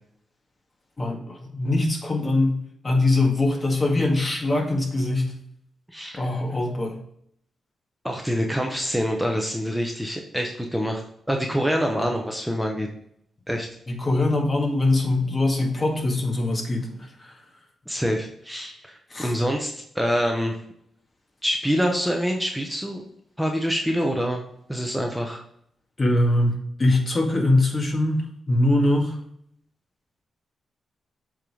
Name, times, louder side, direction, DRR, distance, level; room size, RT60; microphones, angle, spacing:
voice 1, 1.0-5.3 6.2-7.0 12.0-12.1 13.9-17.4 19.1-19.3 26.0-29.2, left 2 dB, 35° left, 1 dB, 1.9 m, -23 dB
voice 2, 5.9-6.2 8.0-11.0 11.3-12.9 13.5-13.7 17.9-20.6 21.4-23.0 23.4-24.4 24.7-25.4, equal, ahead, 1 dB, 1.0 m, -26 dB
7.4 x 3.7 x 4.9 m, 0.70 s
cardioid pair, 65°, 0 cm